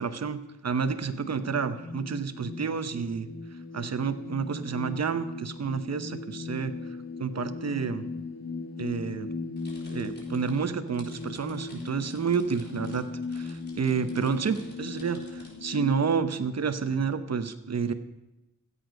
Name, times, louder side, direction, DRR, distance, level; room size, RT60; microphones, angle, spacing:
voice 1, 0.0-3.3 3.7-6.7 7.2-8.1 8.8-9.3 9.9-13.1 13.3-17.9, right 6 dB, 55° right, 11 dB, 0.9 m, -29 dB
sound 1, 0.8-16.1, left 4 dB, 55° left, 1.6 m, -39 dB
sound 2, 9.6-15.5, left 1 dB, 30° left, 4.0 m, -54 dB
15.0 x 8.3 x 5.1 m, 0.96 s
cardioid pair, 45°, 32 cm